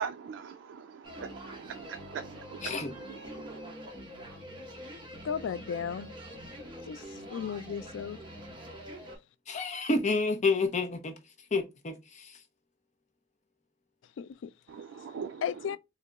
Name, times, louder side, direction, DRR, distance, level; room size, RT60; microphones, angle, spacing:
voice 1, 0.0-3.8 14.7-15.4, right 7 dB, 80° right, 0.3 m, -41 dB
sound 1, 1.0-9.2, equal, 25° right, 1.1 m, -45 dB
voice 2, 2.6-2.9 9.5-11.2 11.5-12.4, left 3 dB, 40° left, 0.7 m, -29 dB
voice 3, 5.2-6.1 6.9-8.2 14.2-14.5 15.4-15.8, left 7 dB, 85° left, 0.3 m, -35 dB
3.9 x 2.8 x 2.2 m
head